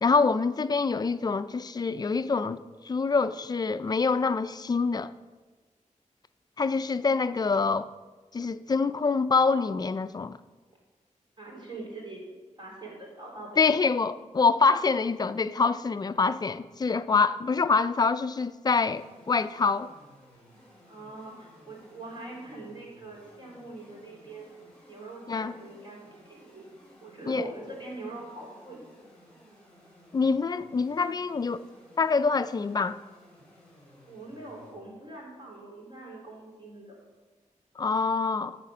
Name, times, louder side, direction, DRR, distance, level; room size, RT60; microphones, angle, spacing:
voice 1, 0.0-2.6 2.8-5.1 6.6-7.9 8.3-10.4 13.6-19.9 25.3-25.5 27.3-27.4 30.1-31.6 32.0-33.0 37.8-38.6, left 4 dB, 30° left, 0.4 m, -25 dB
voice 2, 11.4-12.2 12.6-13.7 20.9-24.5 24.9-26.7 27.0-28.8 34.1-37.0, right 2 dB, 40° right, 3.7 m, -43 dB
sound 1, 18.8-34.8, equal, 5° left, 3.8 m, -56 dB
12.5 x 4.9 x 8.4 m
wide cardioid pair, 170°, 13 cm